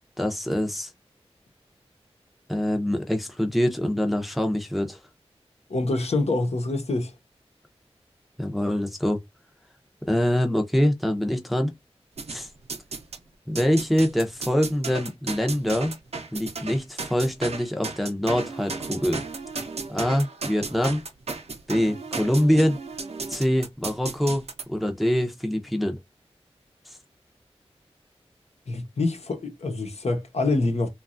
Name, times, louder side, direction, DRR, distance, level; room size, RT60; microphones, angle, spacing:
voice 1, 0.2-0.9 2.5-5.0 8.4-9.2 10.1-11.7 12.3-12.5 13.5-15.9 16.3-19.2 19.9-21.0 21.7-22.8 23.3-26.0, equal, ahead, 0.6 m, -24 dB
voice 2, 5.7-7.1 28.7-30.9, left 2 dB, 75° left, 0.9 m, -26 dB
sound 1, 12.2-13.2 13.6-24.6, right 4 dB, 70° right, 0.6 m, -35 dB
3.0 x 2.3 x 2.4 m
wide cardioid pair, 75°, 11 cm